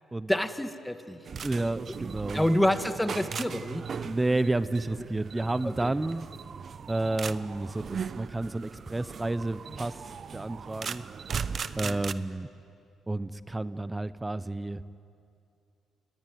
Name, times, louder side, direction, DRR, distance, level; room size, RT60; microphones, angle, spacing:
voice 1, 0.3-1.2 2.3-3.9 5.6-5.9 11.8-12.0, left 1 dB, 5° left, 8 dB, 1.7 m, -28 dB
sound 1, 1.2-12.1, right 6 dB, 50° right, 0.9 m, -38 dB
voice 2, 1.4-2.4 4.0-6.3 6.9-9.9 10.3-11.0 11.8-12.5 13.1-14.8, right 2 dB, 15° right, 14 dB, 0.9 m, -30 dB
28.5 x 21.5 x 9.4 m, 2.5 s
cardioid pair, 90°, 0 cm